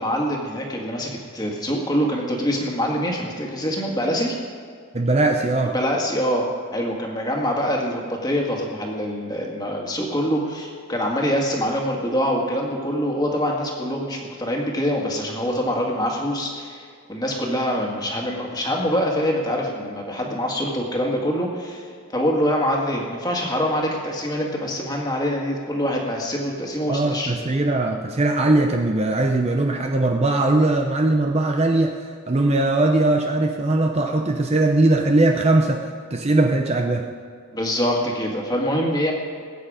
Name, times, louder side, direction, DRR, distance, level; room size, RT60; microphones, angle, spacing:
voice 1, 0.0-4.4 5.7-27.3 37.5-39.1, equal, 20° left, -1 dB, 1.9 m, -24 dB
voice 2, 4.9-5.7 26.9-37.1, right 2 dB, 30° right, 3 dB, 0.7 m, -20 dB
20.0 x 9.0 x 5.0 m, 2.2 s
head